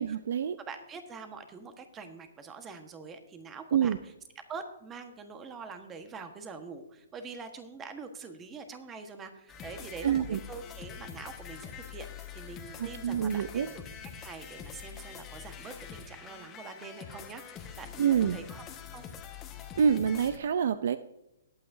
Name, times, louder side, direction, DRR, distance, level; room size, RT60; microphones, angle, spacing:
voice 1, 0.0-0.6 3.7-4.0 10.0-10.4 12.8-13.7 18.0-18.4 19.8-21.0, right 8 dB, 60° right, 14 dB, 0.5 m, -27 dB
voice 2, 0.6-3.9 4.5-13.8 14.2-18.6 18.9-19.1, right 4 dB, 20° right, 7 dB, 1.4 m, -45 dB
sound 1, 9.5-20.4, left 7 dB, 20° left, 1.4 m, -45 dB
20.0 x 8.8 x 2.7 m, 0.88 s
hypercardioid pair, 135°, 0 cm